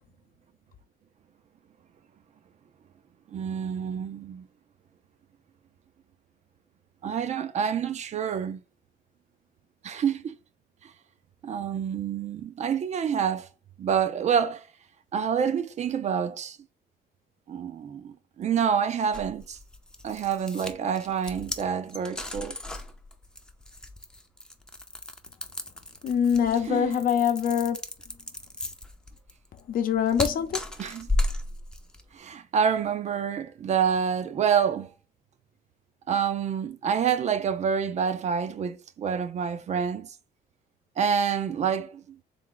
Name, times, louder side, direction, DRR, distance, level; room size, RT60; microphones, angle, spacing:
voice 1, 3.3-4.5 7.0-8.6 9.8-10.4 11.4-13.5 13.8-14.7 15.1-16.6 17.5-19.6 20.0-22.6 26.7-27.0 30.8-31.1 32.1-34.9 36.1-40.1 41.0-42.0, right 7 dB, 45° right, 0.5 m, -27 dB
sound 1, 19.1-32.1, left 1 dB, 5° left, 0.6 m, -34 dB
voice 2, 26.0-27.8 29.7-30.6, left 8 dB, 55° left, 0.7 m, -24 dB
3.4 x 3.4 x 3.8 m
cardioid pair, 110°, 17 cm